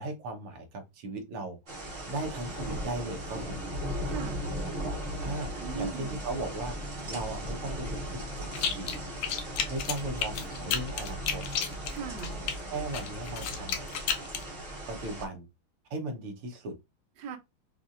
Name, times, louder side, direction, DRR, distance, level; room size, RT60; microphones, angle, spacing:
voice 1, 0.0-3.7 5.2-9.0 9.7-11.4 12.7-13.8 14.9-15.5 15.9-16.7, right 2 dB, 85° right, 2.0 m, -37 dB
sound 1, 1.7-15.2, equal, 35° right, 0.9 m, -37 dB
voice 2, 4.0-4.5 5.6-6.2 11.9-12.4 17.2-17.4, right 6 dB, 65° right, 1.4 m, -38 dB
sound 2, 8.5-9.0 9.2-12.5 12.9-14.4, left 8 dB, 75° left, 1.5 m, -31 dB
5.5 x 2.7 x 2.5 m
omnidirectional pair, 2.3 m